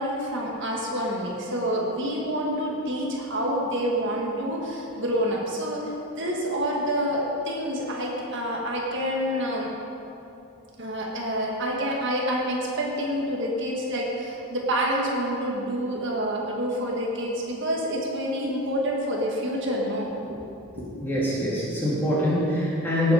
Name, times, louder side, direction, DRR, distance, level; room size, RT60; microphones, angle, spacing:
voice 1, 0.0-5.9 6.2-9.7 10.8-20.4 20.7-21.1, equal, 55° right, -2 dB, 1.7 m, -28 dB
voice 2, 21.0-23.1, equal, 10° left, -8 dB, 3.5 m, -24 dB
18.0 x 8.5 x 5.0 m, 2.8 s
head